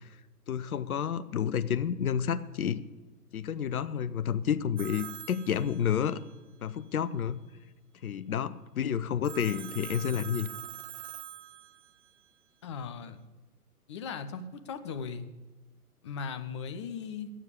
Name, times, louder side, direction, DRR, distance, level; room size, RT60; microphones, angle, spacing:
voice 1, 0.5-2.8 3.3-6.2 6.6-7.4 8.0-10.5, left 8 dB, 65° left, 14 dB, 0.8 m, -30 dB
Telephone, 4.8-6.3 9.2-12.1, right 11 dB, 50° right, 0.7 m, -44 dB
voice 2, 12.6-13.2 13.9-15.3 16.0-17.3, left 6 dB, 20° left, 9 dB, 0.5 m, -38 dB
11.5 x 7.3 x 8.4 m, 1.2 s
figure-of-eight pair, 125°, 47 cm